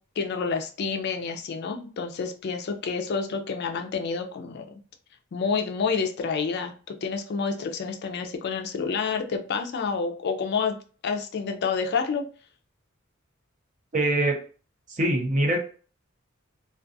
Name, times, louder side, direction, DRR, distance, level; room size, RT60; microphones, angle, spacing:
voice 1, 0.2-4.8 5.3-6.7 7.0-10.8 11.0-12.3, left 5 dB, 55° left, 4 dB, 0.4 m, -28 dB
voice 2, 13.9-14.4 14.9-15.6, right 1 dB, 40° right, 1 dB, 0.6 m, -23 dB
2.4 x 2.3 x 2.5 m, 0.39 s
head